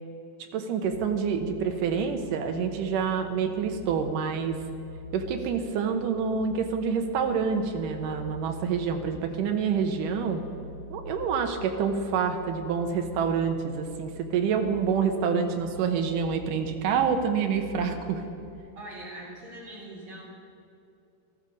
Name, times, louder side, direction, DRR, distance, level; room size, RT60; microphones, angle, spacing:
voice 1, 0.5-4.6 5.1-10.4 10.9-18.2, right 6 dB, 75° right, 6 dB, 2.4 m, -27 dB
sound 1, 0.8-18.6, left 1 dB, 60° right, 3.2 m, -45 dB
voice 2, 18.8-20.2, right 1 dB, 35° right, -5 dB, 4.5 m, -42 dB
14.5 x 13.5 x 5.2 m, 2.6 s
omnidirectional pair, 4.2 m